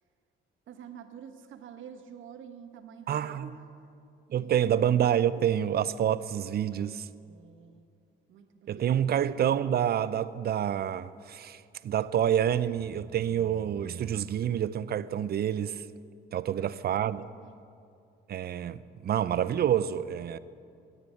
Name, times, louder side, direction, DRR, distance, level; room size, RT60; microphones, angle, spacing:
voice 1, 0.7-3.6 4.3-5.0 6.7-7.8 8.3-9.2 16.5-17.5, right 8 dB, 75° right, 1.2 m, -49 dB
voice 2, 3.1-3.5 4.3-7.0 8.7-15.8 16.3-17.3 18.3-20.4, right 10 dB, 55° right, 0.6 m, -28 dB
13.5 x 9.6 x 8.4 m
cardioid pair, 90°, 20 cm